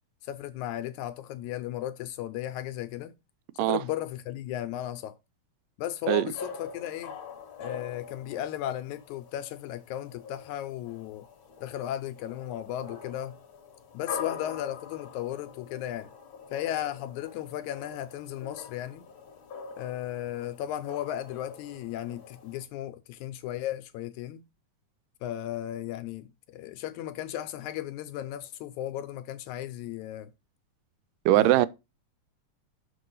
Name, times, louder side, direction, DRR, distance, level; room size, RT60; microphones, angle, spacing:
voice 1, 0.2-3.1 3.6-5.2 5.8-7.2 7.6-11.3 11.6-13.3 13.9-16.1 16.5-19.0 19.8-24.4 25.2-30.3 31.3-31.7, left 12 dB, 80° left, 1.8 m, -35 dB
sound 1, 6.3-22.6, left 6 dB, 60° left, 1.3 m, -44 dB
voice 2, 31.3-31.7, right 15 dB, 85° right, 2.0 m, -21 dB
6.6 x 4.4 x 5.5 m
omnidirectional pair, 3.7 m